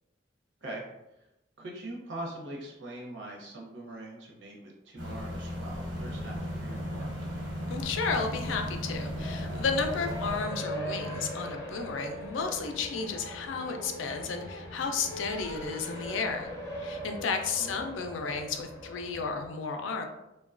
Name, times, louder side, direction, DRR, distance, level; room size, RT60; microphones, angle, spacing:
voice 1, 1.6-7.1 17.5-17.8, right 1 dB, 70° right, -1 dB, 0.7 m, -42 dB
sound 1, 5.0-10.4, left 1 dB, 85° right, 1.1 m, -37 dB
Race car auto racing, 5.4-19.5, equal, 15° left, 0.5 m, -42 dB
sound 2, 5.9-17.1, right 1 dB, 40° right, 0.3 m, -43 dB
voice 2, 7.7-16.5 16.7-20.1, left 4 dB, 85° left, 5 dB, 0.4 m, -33 dB
2.9 x 2.2 x 2.4 m, 0.93 s
head